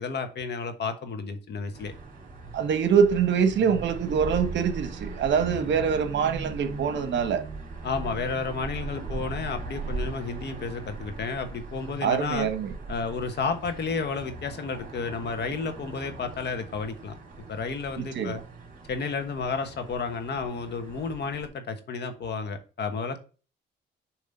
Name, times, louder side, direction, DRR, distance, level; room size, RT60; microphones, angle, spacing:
voice 1, 0.0-1.9 7.8-12.5 12.9-17.2 17.5-18.4 18.9-23.2, left 4 dB, 60° left, 1.3 m, -32 dB
sound 1, 1.7-21.5, right 4 dB, 40° right, 2.5 m, -39 dB
voice 2, 2.5-7.4 12.0-12.7 18.0-18.4, right 7 dB, 65° right, 1.1 m, -24 dB
7.1 x 3.1 x 5.4 m
cardioid pair, 90°, 20 cm